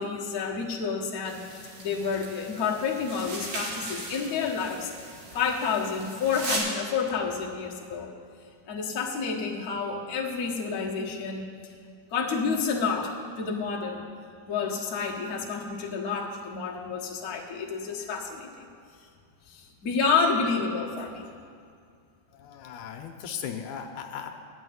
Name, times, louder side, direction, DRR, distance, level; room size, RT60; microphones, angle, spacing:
voice 1, 0.0-4.9 5.3-8.1 8.7-11.5 12.1-14.1 14.5-18.7 19.5-21.3, left 5 dB, 50° left, -2 dB, 1.0 m, -29 dB
sound 1, 1.2-6.6, right 2 dB, 90° right, 4.0 m, -38 dB
voice 2, 22.3-24.3, left 8 dB, 80° left, 5 dB, 2.1 m, -37 dB
12.5 x 6.3 x 9.4 m, 2.3 s
omnidirectional pair, 3.7 m